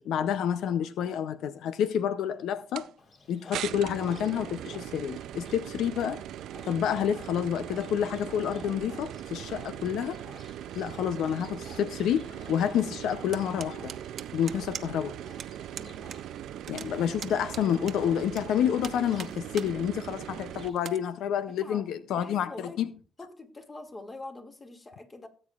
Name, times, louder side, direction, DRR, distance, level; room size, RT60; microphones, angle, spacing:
voice 1, 0.0-2.9 3.3-6.2 6.6-10.2 10.8-13.9 14.3-15.1 16.7-22.9, left 9 dB, 80° left, 0.5 m, -29 dB
sound 1, 2.8-2.9 3.5-20.7, right 11 dB, 80° right, 0.4 m, -40 dB
Livestock farm animals working animals, 3.0-20.9, left 3 dB, 55° left, 4.0 m, -55 dB
sound 2, 13.3-15.1 15.4-15.5 15.8-16.2 16.5-18.4 18.8-19.7 20.1-20.2 20.8-21.0, right 8 dB, 60° right, 1.0 m, -41 dB
voice 2, 15.7-16.1 17.0-17.2 21.6-22.8 23.2-25.3, left 2 dB, 25° left, 2.2 m, -45 dB
18.0 x 8.6 x 2.4 m
cardioid pair, 90°, 0 cm